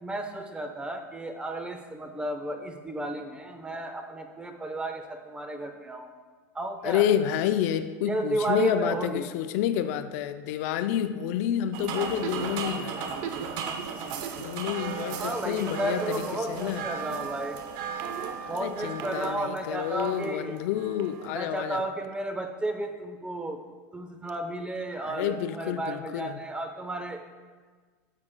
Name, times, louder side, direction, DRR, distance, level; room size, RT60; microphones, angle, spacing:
voice 1, 0.0-6.1 6.5-7.1 8.0-9.3 15.2-17.6 18.5-20.6 21.3-23.6 23.9-27.2, right 1 dB, 10° right, 5 dB, 0.8 m, -33 dB
voice 2, 6.8-13.1 14.4-16.8 18.4-21.9 25.0-26.4, left 10 dB, 70° left, 10 dB, 0.4 m, -29 dB
sound 1, 11.7-21.3, right 6 dB, 60° right, 0.7 m, -35 dB
9.5 x 7.3 x 2.2 m, 1.5 s
supercardioid pair, 110°, 9 cm